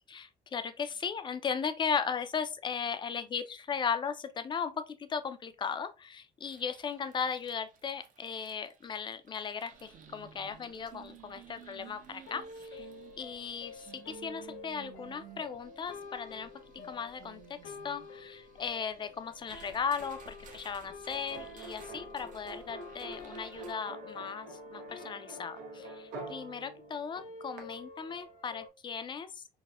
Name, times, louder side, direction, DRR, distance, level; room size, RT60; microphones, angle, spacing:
voice 1, 0.1-12.9 13.2-16.5 16.8-29.6, left 6 dB, 30° left, 0.4 m, -37 dB
sound 1, 6.4-23.7, right 7 dB, 50° right, 0.6 m, -55 dB
sound 2, 12.3-28.7, left 3 dB, 85° left, 0.6 m, -49 dB
sound 3, 21.1-27.6, right 2 dB, 90° right, 0.8 m, -47 dB
4.1 x 2.1 x 2.3 m
cardioid pair, 110°, 17 cm